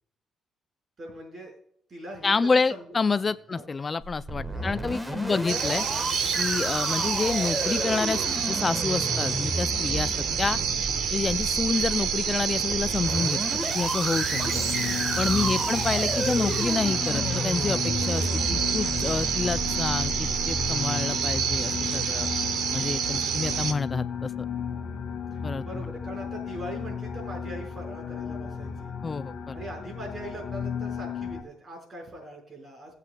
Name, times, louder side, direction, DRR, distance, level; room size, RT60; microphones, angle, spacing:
voice 1, 1.0-1.5 1.9-3.6 4.5-4.8 5.1-5.4 10.8-11.0 15.5-15.7 25.3-28.9 29.5-32.9, right 1 dB, 45° right, 2 dB, 5.0 m, -42 dB
voice 2, 2.2-5.8 6.4-10.6 11.1-13.4 13.7-14.6 15.2-22.3 22.7-24.3 25.4-25.9 29.0-29.6, left 4 dB, 30° left, 15 dB, 0.3 m, -28 dB
sound 1, 4.0-20.8, right 1 dB, 10° right, 1.3 m, -33 dB
sound 2, 5.5-23.7, right 7 dB, 80° right, 1.0 m, -28 dB
sound 3, 14.3-31.4, left 6 dB, 50° left, 1.6 m, -34 dB
18.0 x 8.2 x 2.2 m, 0.68 s
cardioid pair, 90°, 0 cm